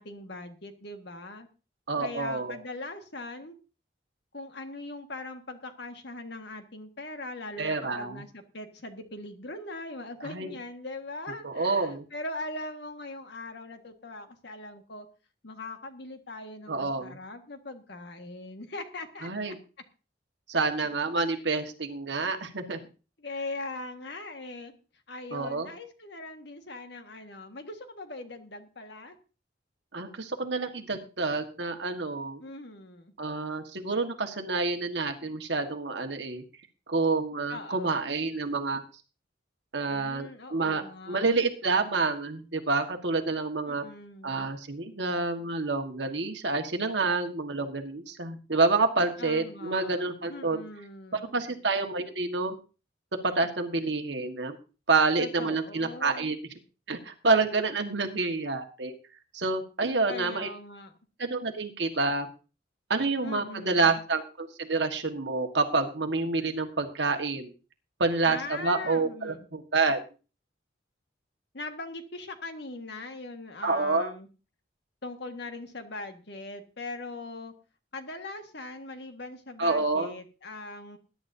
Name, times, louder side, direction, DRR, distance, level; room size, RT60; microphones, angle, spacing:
voice 1, 0.0-1.5 2.0-3.5 4.3-8.3 8.5-15.1 15.4-19.3 23.2-24.7 25.1-29.1 32.4-33.1 37.5-38.1 39.9-41.3 43.7-44.5 49.2-50.0 50.3-51.3 55.2-56.3 60.1-60.9 63.2-64.0 68.3-69.4 71.5-74.3 75.0-77.5 77.9-81.0, left 2 dB, 65° left, 6 dB, 1.7 m, -41 dB
voice 2, 1.9-2.6 7.6-8.2 10.2-10.6 11.4-12.1 16.7-17.2 19.2-19.6 20.5-22.8 25.3-25.7 29.9-32.4 33.2-36.4 36.9-38.8 39.7-43.8 44.2-50.6 51.1-52.6 53.2-54.6 54.9-56.4 56.9-58.9 59.3-60.5 61.2-62.3 62.9-67.5 68.0-70.0 73.6-74.1 79.6-80.1, right 3 dB, 65° right, 5 dB, 1.5 m, -28 dB
21.0 x 10.5 x 2.7 m, 0.34 s
head